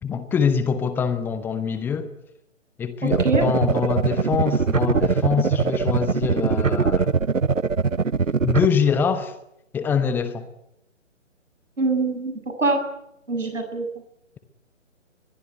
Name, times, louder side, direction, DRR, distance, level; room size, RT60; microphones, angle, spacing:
voice 1, 0.0-2.1 2.8-7.1 8.4-9.3 9.7-10.5, left 6 dB, 5° left, 1.1 m, -24 dB
voice 2, 3.0-3.4 11.8-12.3 12.6-12.8 13.3-13.9, right 3 dB, 75° right, 7.7 m, -23 dB
sound 1, 3.1-8.7, right 5 dB, 90° right, 0.9 m, -22 dB
22.5 x 21.5 x 9.2 m
figure-of-eight pair, 140°, 38 cm